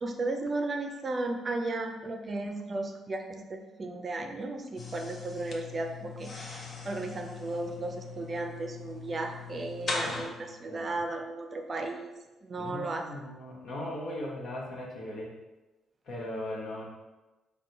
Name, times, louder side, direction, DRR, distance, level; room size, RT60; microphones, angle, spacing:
voice 1, 0.0-12.1 12.4-13.1, right 2 dB, 40° right, 4 dB, 0.5 m, -35 dB
sound 1, 4.8-10.3, left 4 dB, 45° left, 0.7 m, -40 dB
voice 2, 9.9-10.9 12.6-15.3 16.1-16.8, left 1 dB, 65° left, -3 dB, 1.1 m, -39 dB
3.7 x 2.2 x 4.4 m, 1.1 s
cardioid pair, 90°, 0 cm